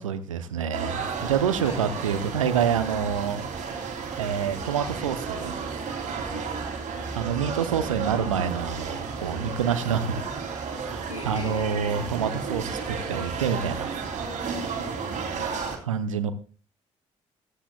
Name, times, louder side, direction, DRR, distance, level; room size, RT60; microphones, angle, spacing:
voice 1, 0.0-3.4 4.2-5.5 7.1-10.2 10.8-13.9 14.3-14.4 15.8-16.3, right 7 dB, 80° right, 13 dB, 0.8 m, -27 dB
sound 1, 0.7-15.8, right 5 dB, 50° right, 3.4 m, -33 dB
voice 2, 6.3-6.8 11.1-11.8 14.8-15.7, left 3 dB, 90° left, 2 dB, 1.9 m, -42 dB
17.0 x 13.0 x 2.4 m, 0.38 s
figure-of-eight pair, 45°, 17 cm